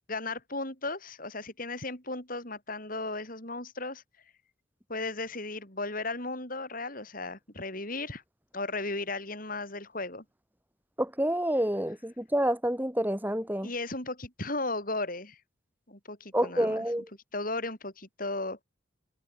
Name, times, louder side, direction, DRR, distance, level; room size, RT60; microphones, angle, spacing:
voice 1, 0.1-4.0 4.9-8.2 8.5-10.2 13.6-15.4 15.9-16.8 17.3-18.6, left 2 dB, 45° left, 7.9 m, -35 dB
voice 2, 11.0-13.7 16.3-17.1, right 1 dB, 10° right, 4.7 m, -28 dB
head